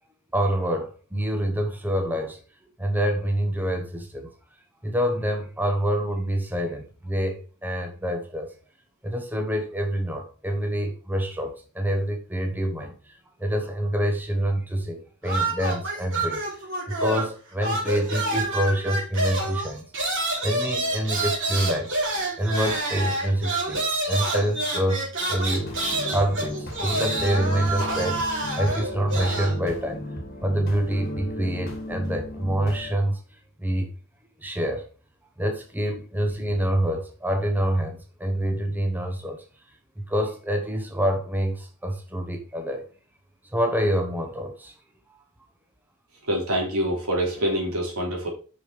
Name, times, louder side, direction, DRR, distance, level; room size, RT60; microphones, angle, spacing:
voice 1, 0.3-2.4 2.8-4.3 4.8-8.5 9.0-13.1 13.4-19.8 20.4-21.9 22.4-25.7 26.1-28.3 28.6-30.0 30.4-33.2 33.6-33.9 34.4-34.9 35.4-39.4 40.0-42.9 43.5-44.7, right 1 dB, 10° right, 1.1 m, -26 dB
sound 1, 15.2-17.4 17.6-29.6, right 2 dB, 60° right, 3.7 m, -28 dB
sound 2, 25.5-33.0, left 1 dB, 45° left, 2.1 m, -35 dB
voice 2, 46.2-48.3, equal, 85° right, 3.4 m, -25 dB
6.4 x 6.2 x 5.0 m
head